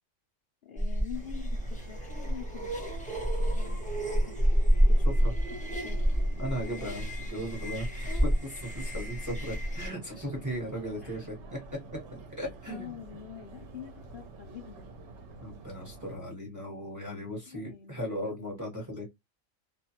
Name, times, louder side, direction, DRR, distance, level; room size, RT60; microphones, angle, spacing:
voice 1, 0.6-2.7 3.4-5.1 5.8-6.3 6.8-7.0 8.0-8.2 11.0-11.2 12.7-14.9 17.5-18.5, left 9 dB, 60° left, 0.7 m, -46 dB
sound 1, 0.8-9.9, equal, 10° left, 0.3 m, -28 dB
Subway metro underground, 1.1-16.2, right 1 dB, 65° right, 0.9 m, -46 dB
voice 2, 6.4-8.3 8.7-11.6 12.1-13.0 15.4-19.1, equal, 15° right, 0.9 m, -37 dB
2.5 x 2.3 x 2.7 m
omnidirectional pair, 1.4 m